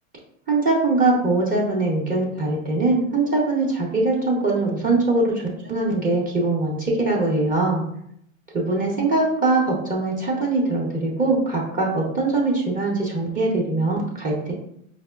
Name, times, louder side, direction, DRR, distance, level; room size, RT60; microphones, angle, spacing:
voice 1, 0.5-7.8 8.5-14.5, right 2 dB, 20° right, -4 dB, 0.7 m, -22 dB
5.0 x 2.1 x 2.3 m, 0.72 s
hypercardioid pair, 115°, 43 cm